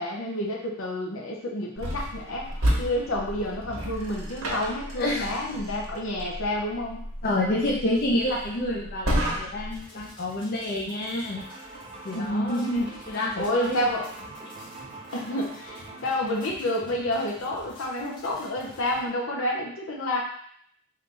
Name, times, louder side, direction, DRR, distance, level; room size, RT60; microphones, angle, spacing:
voice 1, 0.0-2.5 2.8-7.1 7.7-8.0 12.1-14.0 15.1-20.2, left 1 dB, 80° left, -1 dB, 0.7 m, -29 dB
sound 1, 1.8-9.8, equal, 80° right, 1.0 m, -32 dB
voice 2, 5.0-5.7 7.2-11.4 12.0-12.6 13.1-13.9, left 1 dB, 50° left, -3 dB, 0.6 m, -28 dB
sound 2, 9.7-19.1, left 1 dB, 25° left, 1.1 m, -49 dB
sound 3, 11.4-16.5, right 2 dB, 30° right, 0.6 m, -44 dB
3.8 x 2.6 x 3.3 m, 0.64 s
head